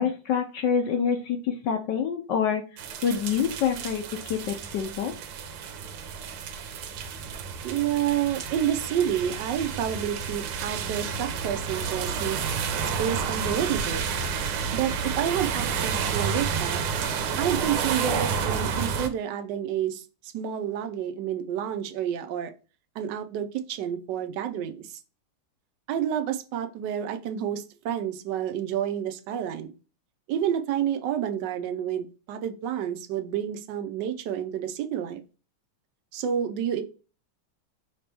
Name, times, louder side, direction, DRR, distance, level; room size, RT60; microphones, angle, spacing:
voice 1, 0.0-2.7 3.0-5.1, left 7 dB, 70° left, 5 dB, 1.1 m, -26 dB
sound 1, 2.8-19.1, right 6 dB, 90° right, 1.6 m, -30 dB
voice 2, 7.6-12.5 13.0-14.1 14.7-16.8 17.4-22.5 22.9-25.0 25.9-29.7 30.3-35.2 36.1-36.8, right 9 dB, 70° right, 7 dB, 1.1 m, -29 dB
5.0 x 2.9 x 3.4 m, 0.34 s
omnidirectional pair, 2.3 m